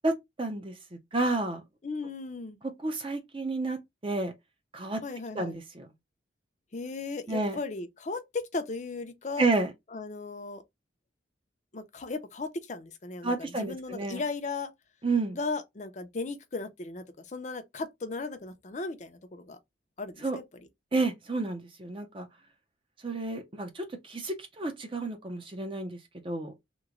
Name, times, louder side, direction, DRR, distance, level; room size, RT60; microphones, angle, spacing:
voice 1, 0.0-0.7 1.1-1.6 2.8-4.3 4.7-5.0 5.4-5.9 7.3-7.6 9.4-9.7 13.2-14.2 15.0-15.4 20.2-20.4 20.9-22.3 23.0-26.0 26.2-26.5, right 3 dB, 25° right, 0.5 m, -30 dB
voice 2, 1.8-2.6 5.0-5.6 6.7-9.5 9.9-10.6 11.7-14.7 15.3-19.6 20.0-20.4, left 3 dB, 40° left, 0.5 m, -36 dB
3.0 x 2.1 x 3.7 m
head